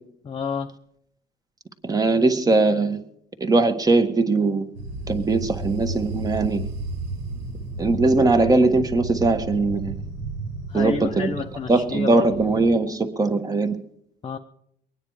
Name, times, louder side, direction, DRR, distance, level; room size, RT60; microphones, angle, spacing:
voice 1, 0.2-0.7 10.7-12.3 14.2-14.4, left 5 dB, 30° left, 0.8 m, -29 dB
voice 2, 1.8-3.0 3.4-4.6 5.1-6.6 7.8-9.9 10.7-11.3 11.7-13.8, right 3 dB, 20° right, 1.5 m, -20 dB
sound 1, 4.7-12.7, right 2 dB, 85° right, 3.3 m, -33 dB
23.0 x 9.6 x 4.8 m
cardioid pair, 110°, 17 cm